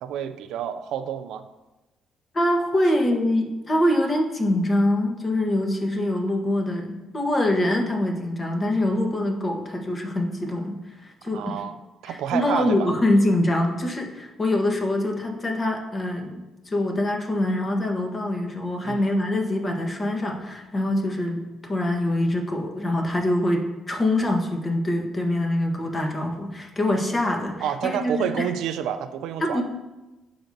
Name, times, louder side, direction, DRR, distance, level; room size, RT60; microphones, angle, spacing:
voice 1, 0.0-1.5 11.3-11.8 12.0-12.9 18.8-19.0 27.6-29.6, right 9 dB, 85° right, 10 dB, 0.4 m, -29 dB
voice 2, 2.3-11.6 12.1-28.5 29.4-29.6, left 1 dB, 30° left, 2 dB, 1.3 m, -24 dB
11.5 x 4.9 x 2.7 m, 1.1 s
cardioid pair, 90°, 0 cm